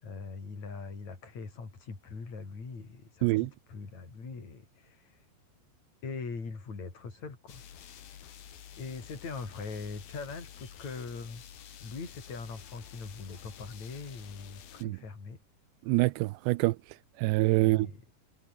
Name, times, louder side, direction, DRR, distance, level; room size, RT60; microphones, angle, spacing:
voice 1, 0.0-5.3 6.0-7.6 8.0-8.2 8.8-11.4 11.8-15.4 17.6-18.0, left 4 dB, 40° left, 6.5 m, -42 dB
sound 1, 7.5-14.8, left 9 dB, 60° left, 3.9 m, -50 dB
voice 2, 15.8-16.8 17.2-17.9, right 21 dB, 85° right, 2.8 m, -25 dB
omnidirectional pair, 5.0 m